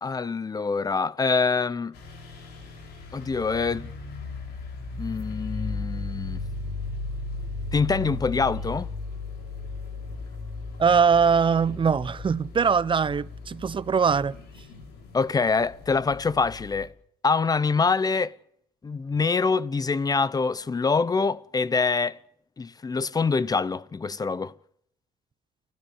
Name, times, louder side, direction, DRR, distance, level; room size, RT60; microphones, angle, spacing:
voice 1, 0.0-1.9 3.1-3.9 5.0-6.4 7.7-8.9 15.1-16.9 17.2-18.4 18.8-22.2 22.6-24.5, left 4 dB, 20° left, 0.9 m, -25 dB
sound 1, 1.9-16.9, left 3 dB, 80° left, 6.7 m, -36 dB
voice 2, 10.8-14.3, right 6 dB, 30° right, 1.0 m, -22 dB
29.5 x 13.0 x 8.9 m
cardioid pair, 110°, 17 cm